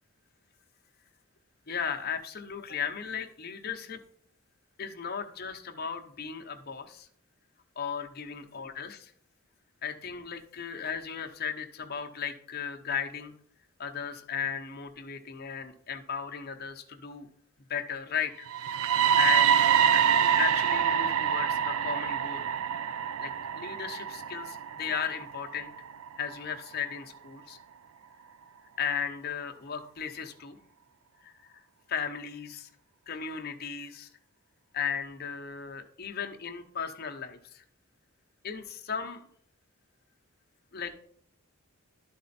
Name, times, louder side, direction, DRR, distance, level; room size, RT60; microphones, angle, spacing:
voice 1, 1.7-4.0 4.8-7.1 7.8-9.1 9.8-13.3 13.8-17.3 17.7-18.7 19.2-19.5 19.9-22.6 23.2-25.7 26.2-27.6 28.8-30.6 31.2-31.6 31.9-32.7 33.1-34.1 34.7-37.6 38.4-39.3 40.7-41.0, left 7 dB, 45° left, 5 dB, 0.8 m, -36 dB
sound 1, 18.5-26.4, right 8 dB, 70° right, 0.4 m, -26 dB
12.0 x 4.2 x 4.1 m, 0.63 s
head